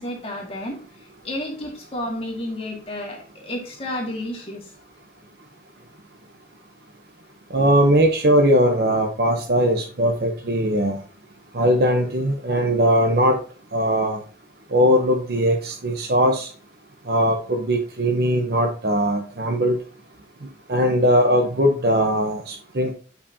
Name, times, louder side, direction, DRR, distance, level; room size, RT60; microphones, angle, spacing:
voice 1, 0.0-4.7, left 1 dB, 35° left, -1 dB, 2.0 m, -31 dB
voice 2, 7.5-11.0 11.5-13.4 13.7-14.2 14.7-16.5 17.1-19.8 20.7-22.9, equal, 60° right, 2 dB, 0.9 m, -20 dB
9.3 x 5.6 x 2.8 m, 0.40 s
head